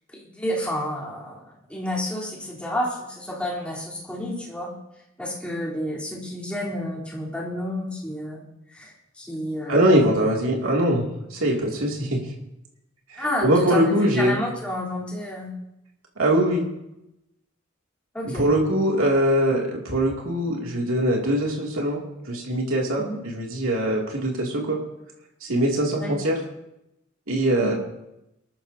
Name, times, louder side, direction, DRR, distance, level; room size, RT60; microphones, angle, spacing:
voice 1, 0.1-4.7 5.2-9.8 13.2-15.5 18.1-18.4 23.0-23.2 26.0-26.1 27.6-27.7, left 1 dB, 5° left, -6 dB, 3.5 m, -30 dB
voice 2, 9.7-12.2 13.1-14.3 16.2-16.6 18.2-22.0 22.3-24.8 25.4-26.4 27.3-27.7, right 1 dB, 85° right, -1 dB, 2.5 m, -22 dB
23.5 x 13.0 x 2.8 m, 0.87 s
head